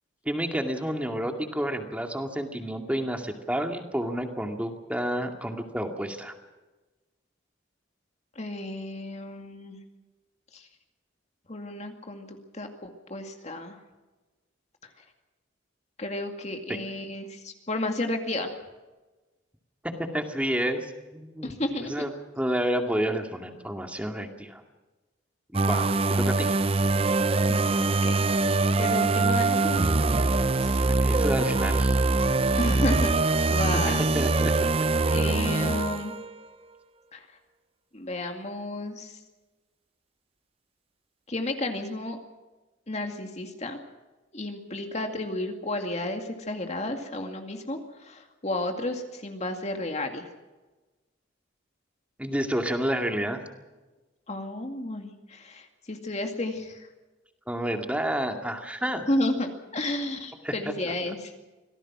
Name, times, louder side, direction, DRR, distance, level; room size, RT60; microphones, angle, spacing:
voice 1, 0.3-6.3 16.7-16.8 19.8-21.5 21.9-22.1 22.3-24.6 25.5-26.5 31.0-32.1 33.8-34.7 52.2-53.4 57.5-59.1 60.4-60.7, equal, 5° right, 4 dB, 2.2 m, -30 dB
voice 2, 8.4-9.8 10.5-10.7 11.5-13.8 16.0-18.6 21.4-22.1 27.5-28.4 28.8-29.8 30.6-30.9 32.6-33.1 33.5-34.0 35.1-36.2 37.1-37.3 37.9-39.2 41.3-42.2 42.9-43.8 44.3-50.3 54.3-56.9 59.1-61.3, left 1 dB, 35° left, 4 dB, 2.2 m, -32 dB
sound 1, 25.5-36.4, right 3 dB, 30° right, 0.7 m, -23 dB
26.0 x 17.5 x 6.1 m, 1.2 s
head